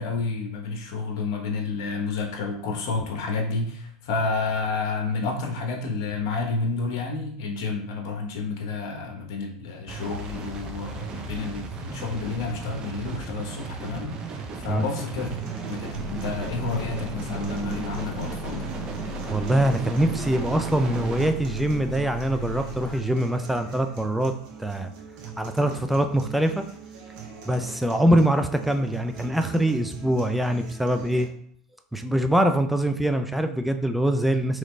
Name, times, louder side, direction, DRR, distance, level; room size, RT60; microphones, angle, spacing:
voice 1, 0.0-18.7, left 3 dB, 70° left, 2 dB, 0.9 m, -30 dB
sound 1, 9.9-21.3, right 4 dB, 35° right, 0.7 m, -36 dB
sound 2, 15.2-31.2, right 8 dB, 65° right, 1.1 m, -40 dB
sound 3, 15.9-23.0, left 5 dB, 20° left, 1.2 m, -39 dB
voice 2, 19.3-24.3 24.6-24.9 25.4-26.6 27.5-31.3 31.9-34.6, right 1 dB, 5° right, 7 dB, 0.5 m, -23 dB
3.9 x 3.1 x 3.2 m, 0.63 s
hypercardioid pair, 95°, 2 cm